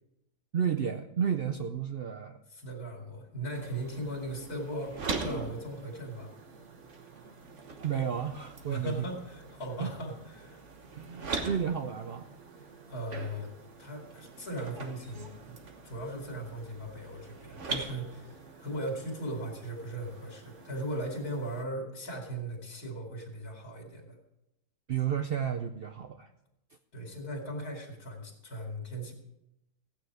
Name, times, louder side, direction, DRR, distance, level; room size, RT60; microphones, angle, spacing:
voice 1, 0.5-2.4 7.8-8.9 9.8-9.9 11.0-12.3 24.9-26.3, right 8 dB, 85° right, 8 dB, 0.5 m, -32 dB
voice 2, 2.5-6.3 8.7-10.6 12.6-13.5 13.8-15.6 15.8-24.2 26.9-29.1, right 1 dB, 65° left, 1 dB, 3.0 m, -38 dB
sound 1, 3.5-21.6, right 4 dB, 50° right, 1.5 m, -43 dB
15.0 x 9.1 x 4.8 m, 0.86 s
omnidirectional pair, 1.7 m